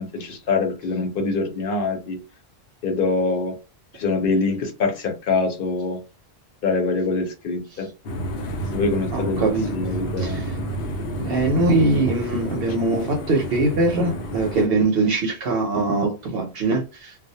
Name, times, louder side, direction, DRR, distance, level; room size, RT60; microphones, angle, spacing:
voice 1, 0.0-2.2 2.8-3.5 3.9-6.0 6.6-7.9 8.7-10.4, left 3 dB, 60° left, 0.8 m, -24 dB
sound 1, 8.0-14.7, right 1 dB, 85° left, 0.8 m, -30 dB
voice 2, 9.1-9.8 10.2-10.5 11.2-17.2, right 2 dB, 70° right, 0.8 m, -22 dB
2.3 x 2.0 x 2.7 m
omnidirectional pair, 1.1 m